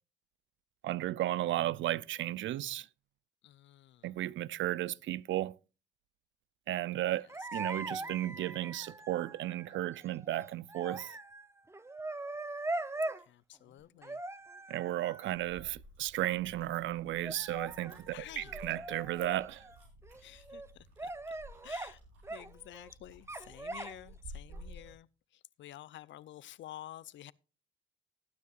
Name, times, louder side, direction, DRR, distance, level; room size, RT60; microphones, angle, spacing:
voice 1, 0.8-2.9 4.0-5.6 6.7-11.2 14.7-19.7, right 14 dB, 70° right, 0.5 m, -34 dB
voice 2, 3.4-4.1 7.2-7.5 13.2-14.2 18.1-18.6 20.2-21.1 21.6-22.0 22.3-27.3, left 13 dB, 70° left, 0.6 m, -51 dB
sound 1, 7.3-13.2 14.0-15.6 17.2-19.8 20.0-20.7 21.0-21.9 22.2-22.9 23.3-24.1 24.5-24.9, right 2 dB, 15° right, 0.7 m, -42 dB
sound 2, 15.3-25.0, right 1 dB, 90° right, 6.2 m, -54 dB
19.5 x 9.4 x 2.4 m
cardioid pair, 90°, 20 cm